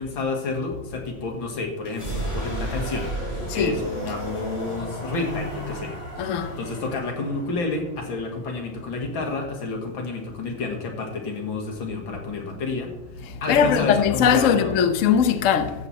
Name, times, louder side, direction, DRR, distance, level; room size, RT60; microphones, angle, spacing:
voice 1, 0.0-5.9 6.6-12.9 13.4-14.9, left 3 dB, 90° left, 2.6 m, -30 dB
sound 1, 1.8-9.5, right 1 dB, 35° left, 4.3 m, -34 dB
voice 2, 6.2-6.5 13.5-15.7, left 7 dB, 55° left, 1.0 m, -20 dB
14.0 x 7.4 x 4.2 m
omnidirectional pair, 2.1 m